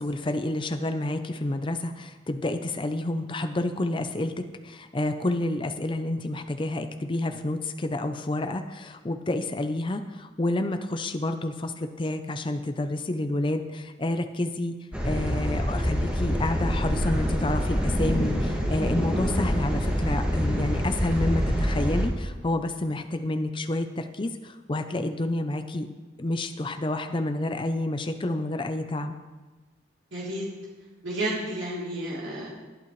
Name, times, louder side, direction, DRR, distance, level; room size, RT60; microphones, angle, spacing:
voice 1, 0.0-4.3 4.6-14.7 15.0-25.9 26.2-29.1, left 1 dB, 25° left, 7 dB, 0.6 m, -29 dB
sound 1, 14.9-22.1, equal, 5° right, 2.0 m, -26 dB
voice 2, 30.1-30.4 31.0-32.5, right 1 dB, 90° right, -6 dB, 3.4 m, -31 dB
22.5 x 8.6 x 3.2 m, 1.2 s
head